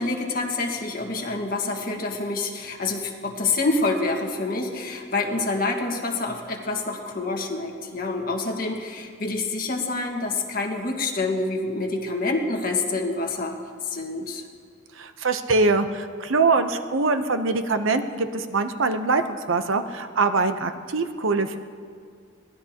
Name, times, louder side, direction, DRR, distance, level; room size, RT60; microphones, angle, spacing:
voice 1, 0.0-13.6 13.8-14.4, left 3 dB, 45° left, 1 dB, 1.7 m, -27 dB
voice 2, 15.0-21.6, right 3 dB, 90° right, 8 dB, 0.9 m, -23 dB
22.5 x 17.0 x 2.9 m, 2.1 s
head